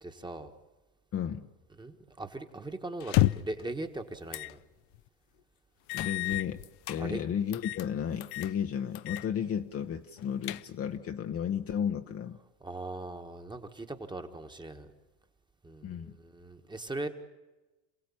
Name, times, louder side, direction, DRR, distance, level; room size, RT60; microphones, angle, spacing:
voice 1, 0.0-0.5 1.8-4.6 7.0-7.2 12.6-14.9 15.6-17.1, right 2 dB, 10° right, 6 dB, 1.5 m, -40 dB
voice 2, 1.1-1.5 5.9-6.6 6.9-12.4 15.8-16.2, left 8 dB, 30° left, 6 dB, 0.9 m, -33 dB
sound 1, 3.0-3.6 4.3-4.5 4.9-5.0 5.9-7.0 7.5-7.9 8.2-8.5 9.0-9.3 9.6-9.7 10.2-11.0, left 17 dB, 60° left, 0.7 m, -31 dB
28.0 x 16.5 x 8.6 m, 1.1 s
supercardioid pair, 125°, 46 cm